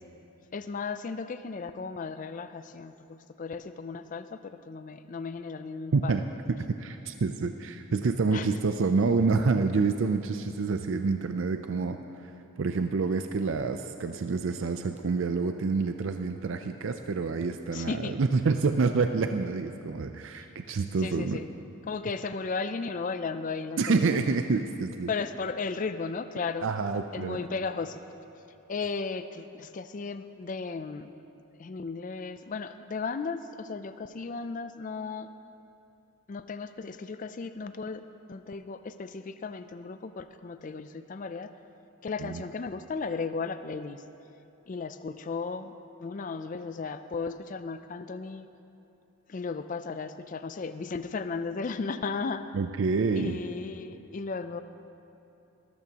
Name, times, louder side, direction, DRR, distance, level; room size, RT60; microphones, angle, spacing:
voice 1, 0.5-4.4 4.7-6.2 8.3-8.5 17.7-18.1 21.0-21.5 21.9-24.2 25.1-26.7 27.1-28.0 28.7-31.1 31.6-35.3 36.3-38.0 38.3-41.5 42.0-44.0 44.7-45.7 46.0-48.5 49.3-52.4 53.1-54.6, left 4 dB, 35° left, 11 dB, 0.4 m, -35 dB
voice 2, 5.9-6.3 6.8-12.0 12.6-21.4 23.8-25.1 26.6-27.4 42.2-42.4 52.5-53.4, right 4 dB, 60° right, 7 dB, 0.4 m, -27 dB
18.5 x 13.5 x 2.9 m, 2.9 s
head